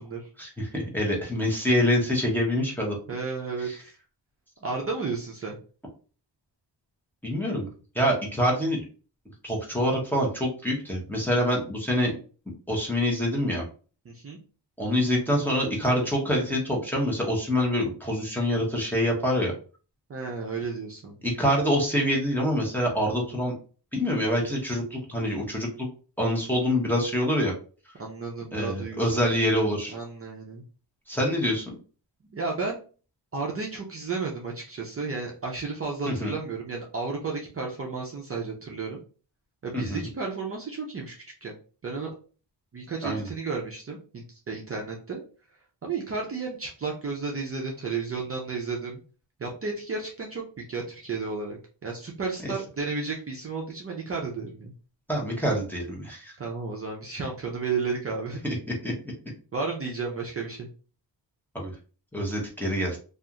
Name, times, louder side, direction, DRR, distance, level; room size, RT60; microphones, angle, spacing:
voice 1, 0.4-3.0 3.6-3.8 7.2-7.7 7.9-8.8 9.4-12.1 12.7-13.6 14.8-19.5 21.2-23.5 23.9-25.9 26.2-27.5 28.5-30.0 31.1-31.7 36.1-36.3 39.7-40.1 43.0-43.3 52.4-52.5 55.1-56.3 58.4-58.9 61.5-61.7 62.1-63.0, equal, 5° left, -3 dB, 0.6 m, -26 dB
voice 2, 3.1-3.9 4.6-5.6 14.1-14.4 20.1-21.2 28.0-29.2 29.9-30.6 32.3-32.8 33.3-39.0 39.6-41.1 41.4-41.5 41.8-42.1 42.7-45.2 45.8-49.0 49.4-54.7 56.4-58.4 59.5-60.7, right 4 dB, 35° right, -1 dB, 0.4 m, -33 dB
2.4 x 2.3 x 2.8 m, 0.38 s
wide cardioid pair, 170°, 43 cm